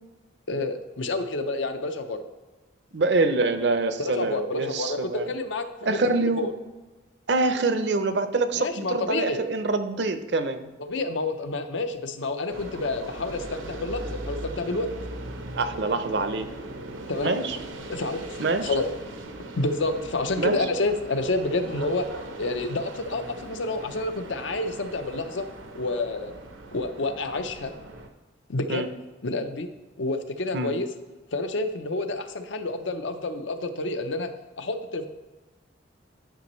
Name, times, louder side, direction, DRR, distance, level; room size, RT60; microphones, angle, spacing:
voice 1, 0.5-2.2 4.0-6.5 8.6-9.4 10.8-14.9 17.1-17.4 17.9-18.9 19.6-22.1 22.4-25.5 25.7-26.3 26.7-27.8 28.5-28.9 29.2-29.7 30.0-30.9 31.3-35.1, left 2 dB, 75° left, 9 dB, 0.6 m, -29 dB
voice 2, 2.9-5.3 5.9-6.5 7.3-10.7 15.6-16.5 17.2-17.6 18.4-18.7 20.4-20.6 28.7-28.9 30.5-30.7, right 3 dB, 60° right, 9 dB, 0.6 m, -25 dB
sound 1, 12.5-28.1, right 2 dB, 85° right, 0.8 m, -39 dB
10.5 x 6.0 x 3.1 m, 1.2 s
head